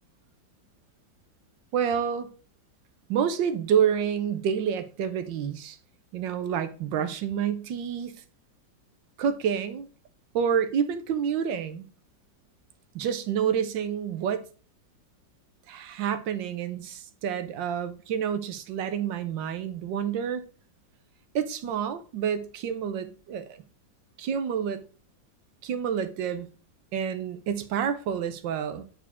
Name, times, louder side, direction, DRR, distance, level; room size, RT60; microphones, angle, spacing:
voice 1, 1.7-2.3 3.1-5.8 6.1-8.1 9.2-9.9 10.3-11.9 12.9-14.4 15.7-20.5 21.3-23.6 24.2-24.8 25.6-26.5 26.9-28.9, right 8 dB, 80° right, 1.4 m, -28 dB
8.4 x 4.8 x 3.4 m
omnidirectional pair, 2.0 m